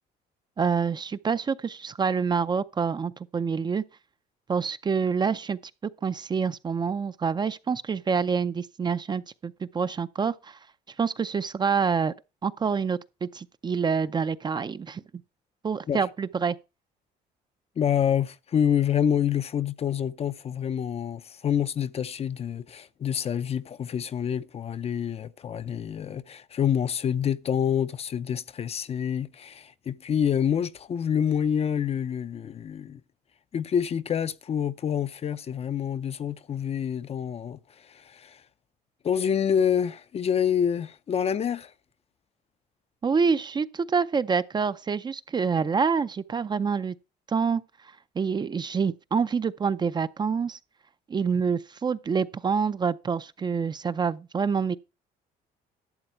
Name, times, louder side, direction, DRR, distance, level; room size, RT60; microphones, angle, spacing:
voice 1, 0.6-3.8 4.5-10.6 11.0-12.1 12.4-15.0 15.6-16.6 43.0-46.9 47.3-47.6 48.2-50.6 51.1-54.8, right 5 dB, 25° right, 0.5 m, -27 dB
voice 2, 17.8-33.0 33.5-38.4 39.0-41.7, left 8 dB, 35° left, 0.5 m, -27 dB
12.0 x 7.7 x 4.5 m
cardioid pair, 110°, 17 cm